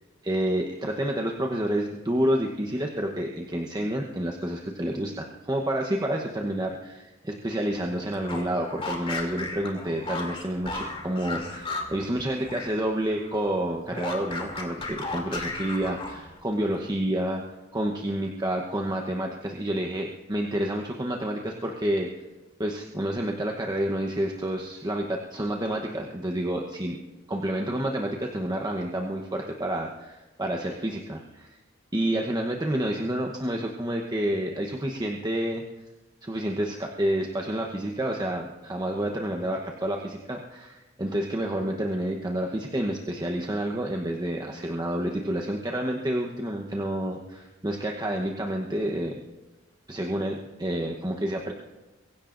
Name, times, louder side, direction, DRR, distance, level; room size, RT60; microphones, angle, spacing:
voice 1, 0.2-17.4 17.7-22.1 22.6-27.0 27.3-31.6 31.9-35.6 36.2-49.1 49.9-51.5, right 1 dB, 20° right, 1 dB, 1.0 m, -29 dB
sound 1, 8.1-12.8 13.1-16.4, left 2 dB, 30° left, 2.8 m, -35 dB
23.5 x 16.0 x 2.6 m, 1.1 s
head